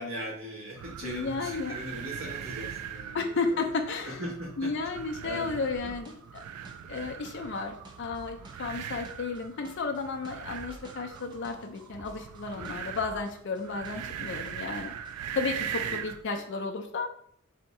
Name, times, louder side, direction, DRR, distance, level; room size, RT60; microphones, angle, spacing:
voice 1, 0.0-3.3 4.1-4.7 5.2-5.5 5.8-5.9 12.6-12.7 15.9-16.0, equal, 75° right, -3 dB, 1.3 m, -39 dB
sound 1, 0.8-16.3, right 8 dB, 90° right, 0.3 m, -40 dB
voice 2, 1.0-1.8 3.1-6.4 6.9-14.9 15.4-17.1, left 4 dB, 55° left, 4 dB, 0.4 m, -33 dB
sound 2, 5.8-14.2 14.4-15.3, right 1 dB, 20° right, 0.4 m, -51 dB
3.5 x 2.8 x 4.2 m, 0.64 s
head